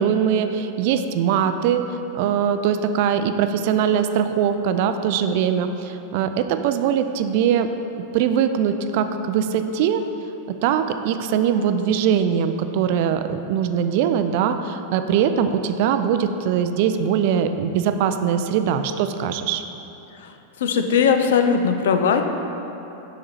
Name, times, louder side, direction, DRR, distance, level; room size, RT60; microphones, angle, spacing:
voice 1, 0.0-1.9 2.1-7.7 8.1-10.0 10.5-19.6, right 8 dB, 50° right, 9 dB, 0.4 m, -21 dB
voice 2, 20.2-22.2, left 6 dB, 60° left, 6 dB, 0.5 m, -20 dB
7.2 x 6.0 x 4.1 m, 3.0 s
figure-of-eight pair, 90°, 0 cm